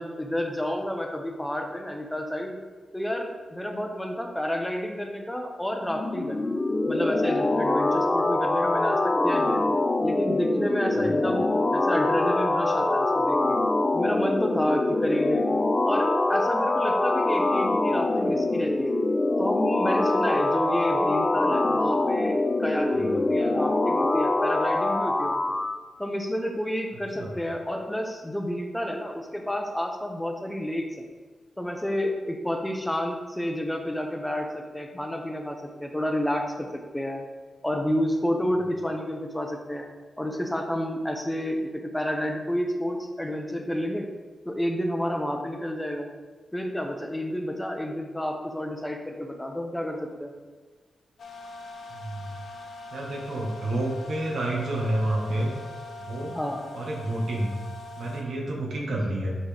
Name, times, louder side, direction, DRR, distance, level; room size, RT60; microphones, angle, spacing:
voice 1, 0.0-2.6 2.9-6.5 6.9-9.7 10.0-13.6 13.9-15.4 15.8-19.0 19.4-25.6 26.0-31.1 31.6-36.7 36.9-37.2 37.6-39.9 40.2-44.1 44.4-46.1 46.5-50.3 56.3-56.6, equal, 10° left, 3 dB, 0.8 m, -30 dB
sound 1, 5.9-25.8, left 2 dB, 30° left, 0.4 m, -24 dB
sound 2, 51.2-58.2, left 2 dB, 75° left, 0.7 m, -42 dB
voice 2, 51.9-52.3 52.9-55.5 56.0-56.4 56.7-57.6 58.0-59.4, right 1 dB, 75° right, -2 dB, 1.6 m, -29 dB
5.9 x 5.4 x 3.5 m, 1.4 s
wide cardioid pair, 95°, 0 cm